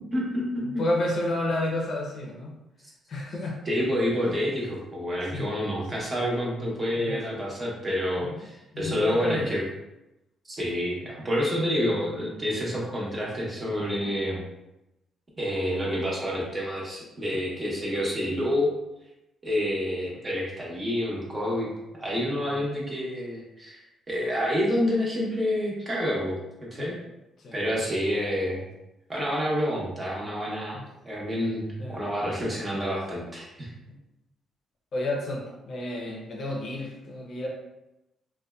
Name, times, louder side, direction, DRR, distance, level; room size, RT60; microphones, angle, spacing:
voice 1, 0.1-0.6 3.7-9.6 10.5-14.4 15.4-18.7 19.4-23.8 24.1-26.4 26.7-27.0 27.5-28.6 29.1-30.8 31.0-33.7, equal, 25° right, -4 dB, 0.8 m, -28 dB
voice 2, 0.6-2.5 3.1-3.6 4.2-4.4 5.3-5.5 7.0-7.3 8.2-8.4 8.7-9.5 22.4-22.6 26.8-27.0 27.4-27.6 30.7-30.9 31.8-32.0 33.9-34.0 34.9-37.5, left 1 dB, 55° left, -1 dB, 0.6 m, -31 dB
2.6 x 2.2 x 2.2 m, 0.94 s
cardioid pair, 90°, 0 cm